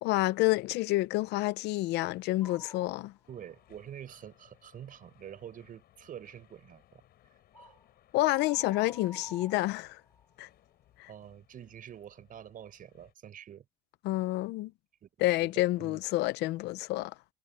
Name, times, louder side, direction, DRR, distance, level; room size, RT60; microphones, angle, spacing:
voice 1, 0.0-3.1 8.1-10.0 10.4-10.5 11.0-11.1 14.0-14.7 15.2-17.1, left 18 dB, 90° left, 0.7 m, -29 dB
sound 1, 2.4-3.0 3.5-3.6 7.5-7.8 8.3-10.2, left 2 dB, 15° left, 1.8 m, -50 dB
sound 2, 3.2-13.1, left 12 dB, 70° left, 7.6 m, -64 dB
voice 2, 3.3-7.0 7.5-7.8 11.1-13.6 15.0-15.5 15.8-16.0, right 10 dB, 55° right, 6.6 m, -47 dB
cardioid pair, 110°, 17 cm